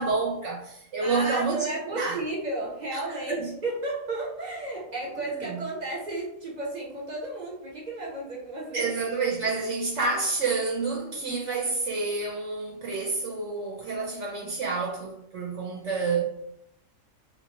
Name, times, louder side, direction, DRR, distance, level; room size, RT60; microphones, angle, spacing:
voice 1, 0.0-2.2 2.9-3.0 3.4-3.5 5.5-5.6 8.7-16.2, right 4 dB, 70° right, 0.9 m, -29 dB
voice 2, 1.0-8.9, right 2 dB, 45° right, 0.6 m, -33 dB
2.5 x 2.2 x 2.8 m
omnidirectional pair, 1.3 m